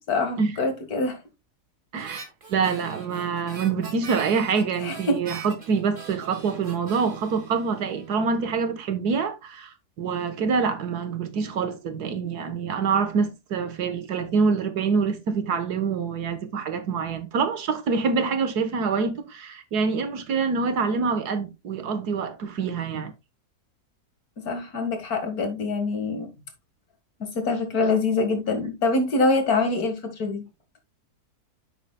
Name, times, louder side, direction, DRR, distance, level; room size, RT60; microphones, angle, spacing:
voice 1, 0.1-1.2 4.8-5.2 24.4-26.3 27.2-30.4, left 3 dB, 65° left, 2.2 m, -25 dB
voice 2, 1.9-2.2 2.5-23.1, right 5 dB, 75° right, 1.7 m, -26 dB
Harmonica, 2.0-8.4, right 4 dB, 35° right, 1.6 m, -43 dB
10.5 x 7.3 x 2.2 m
omnidirectional pair, 1.7 m